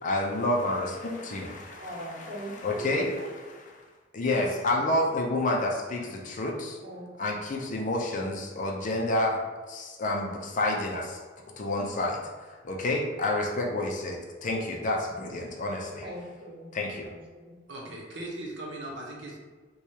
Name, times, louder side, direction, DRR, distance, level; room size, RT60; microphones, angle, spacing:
voice 1, 0.0-1.9 2.2-2.3 2.6-3.2 4.1-6.8 7.2-9.4 9.7-11.2 11.6-12.2 12.6-16.0 16.7-17.1, left 1 dB, 45° left, 0 dB, 0.5 m, -29 dB
voice 2, 1.8-3.3 4.3-5.0 6.8-7.4 16.0-16.7 17.0-17.6, equal, 30° right, -7 dB, 1.4 m, -41 dB
voice 3, 17.7-19.4, right 1 dB, 70° right, -2 dB, 0.8 m, -38 dB
4.7 x 2.3 x 2.8 m, 1.3 s
head